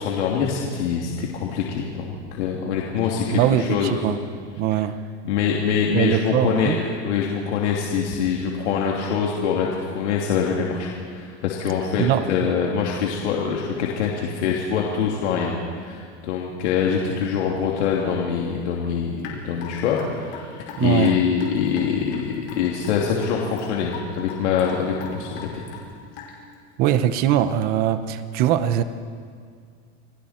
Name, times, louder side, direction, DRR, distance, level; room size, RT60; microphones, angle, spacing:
voice 1, 0.0-4.1 4.8-4.9 5.2-9.7 9.9-25.7, left 7 dB, 80° left, -2 dB, 2.9 m, -24 dB
voice 2, 3.3-4.2 4.6-5.0 5.9-6.8 12.0-12.5 20.8-21.2 26.8-28.8, right 10 dB, 25° right, 12 dB, 0.8 m, -21 dB
Raindrop / Drip, 19.2-26.5, left 6 dB, 50° left, 5.3 m, -40 dB
28.5 x 22.5 x 4.4 m, 2.1 s
supercardioid pair, 175°, 34 cm